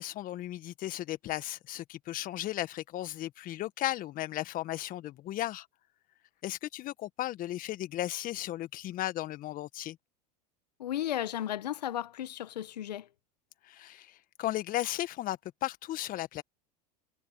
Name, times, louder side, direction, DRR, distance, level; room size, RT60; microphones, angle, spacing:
voice 1, 0.0-5.7 6.4-10.0 13.6-16.4, left 14 dB, 45° left, 1.6 m, -35 dB
voice 2, 10.8-13.1, left 12 dB, 85° left, 1.3 m, -34 dB
hypercardioid pair, 100°, 21 cm